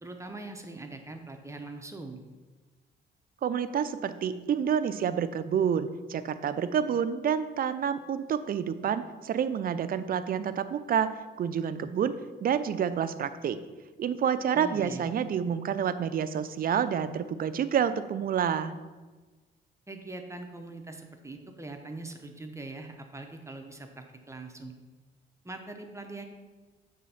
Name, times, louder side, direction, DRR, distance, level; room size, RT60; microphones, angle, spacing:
voice 1, 0.0-2.2 14.5-15.1 19.9-24.7 25.4-26.3, right 2 dB, 15° right, 4 dB, 0.7 m, -42 dB
voice 2, 3.4-12.1 12.4-13.6 14.0-18.7, right 8 dB, 45° right, 12 dB, 0.5 m, -28 dB
7.4 x 3.4 x 5.6 m, 1.3 s
cardioid pair, 90°, 20 cm